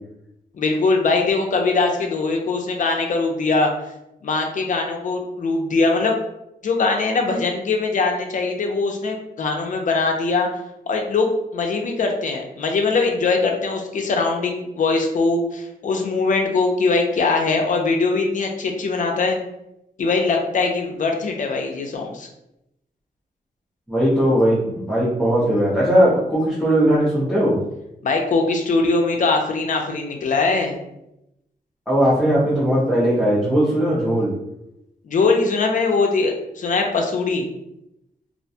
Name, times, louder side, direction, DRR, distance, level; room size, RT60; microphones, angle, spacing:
voice 1, 0.5-3.7 4.2-6.1 6.6-10.5 10.9-19.4 20.0-22.3 28.0-30.8 35.0-37.5, left 3 dB, 55° left, 3 dB, 0.4 m, -21 dB
voice 2, 23.9-27.5 31.9-34.3, equal, ahead, -10 dB, 0.6 m, -18 dB
2.4 x 2.1 x 2.7 m, 0.85 s
wide cardioid pair, 140°, 16 cm